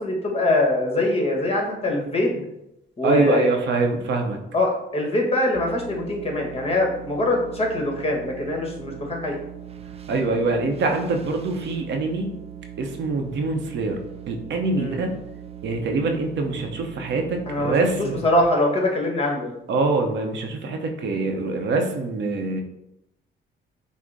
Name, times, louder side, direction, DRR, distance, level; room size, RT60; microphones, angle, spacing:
voice 1, 0.0-2.5 3.0-3.5 4.5-9.4 14.7-15.0 17.5-19.6, left 1 dB, 30° left, 0 dB, 1.4 m, -23 dB
voice 2, 3.0-4.4 10.1-12.3 12.8-14.0 14.3-15.1 15.6-18.2 19.7-22.6, right 3 dB, 65° right, 4 dB, 0.7 m, -24 dB
sound 1, 5.5-18.4, right 10 dB, 30° right, 0.4 m, -40 dB
6.1 x 2.1 x 3.9 m, 0.85 s
cardioid pair, 90°, 20 cm